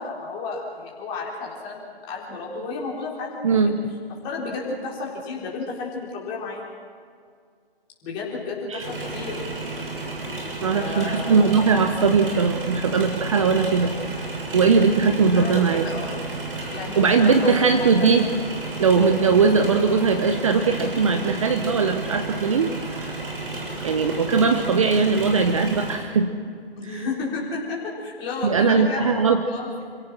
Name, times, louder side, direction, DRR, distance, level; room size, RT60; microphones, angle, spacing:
voice 1, 0.0-3.5 4.2-6.7 8.0-9.4 10.7-11.7 15.3-16.1 16.7-17.3 18.0-18.1 26.8-29.8, left 3 dB, 15° left, -4 dB, 3.8 m, -32 dB
voice 2, 3.4-3.9 8.7-8.8 10.6-13.9 14.5-15.8 17.0-18.2 18.8-23.1 23.8-26.4 28.4-29.4, right 5 dB, 35° right, 7 dB, 0.9 m, -20 dB
sound 1, 8.8-26.0, right 2 dB, 65° right, 6.9 m, -32 dB
28.0 x 16.5 x 6.1 m, 2.1 s
figure-of-eight pair, 155°, 30 cm